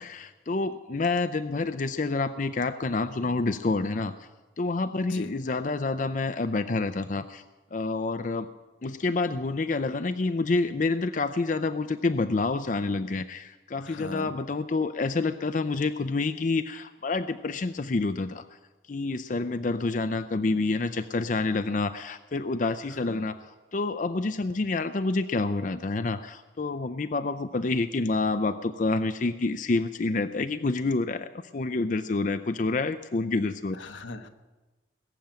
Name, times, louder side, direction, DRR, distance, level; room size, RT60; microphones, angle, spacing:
voice 1, 0.0-4.1 4.6-7.4 7.7-8.5 8.8-18.5 18.9-23.4 23.7-33.8, left 3 dB, 45° left, 10 dB, 0.5 m, -28 dB
voice 2, 5.0-5.3 13.8-14.3 23.1-23.2 33.7-34.3, left 2 dB, 90° left, 6 dB, 1.2 m, -39 dB
20.5 x 7.3 x 8.8 m, 1.2 s
head